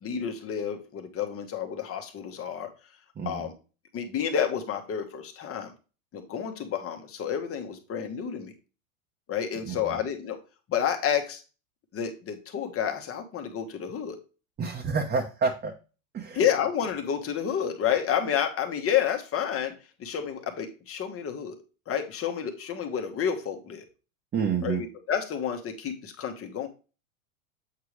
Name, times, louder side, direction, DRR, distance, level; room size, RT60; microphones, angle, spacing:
voice 1, 0.0-2.7 3.2-3.5 3.9-5.7 6.1-8.5 9.3-10.4 10.7-11.4 11.9-14.2 16.3-19.7 20.0-21.6 21.9-23.9 24.6-26.7, left 8 dB, 30° left, 5 dB, 1.5 m, -30 dB
voice 2, 3.2-3.5 9.6-10.0 14.6-15.7 16.1-16.4 24.3-24.8, right 5 dB, 25° right, 1 dB, 1.2 m, -29 dB
8.1 x 4.7 x 3.3 m, 0.32 s
hypercardioid pair, 110°, 42 cm